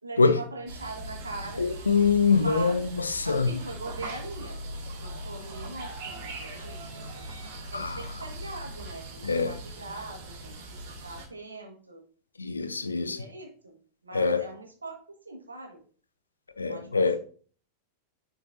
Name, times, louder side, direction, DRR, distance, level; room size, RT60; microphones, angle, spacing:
voice 1, 0.0-1.7 2.3-2.8 3.2-7.2 7.7-12.0 12.7-13.7 14.0-15.0 15.3-15.8 16.7-17.2, right 3 dB, 80° right, 1.8 m, -41 dB
sound 1, 0.7-11.3, right 1 dB, 50° right, 2.1 m, -40 dB
voice 2, 1.6-3.5 7.7-8.0 9.2-9.6 12.4-13.2 14.1-14.4 16.6-17.2, left 4 dB, 80° left, 0.7 m, -24 dB
10.5 x 4.5 x 2.7 m
figure-of-eight pair, 90°, 0 cm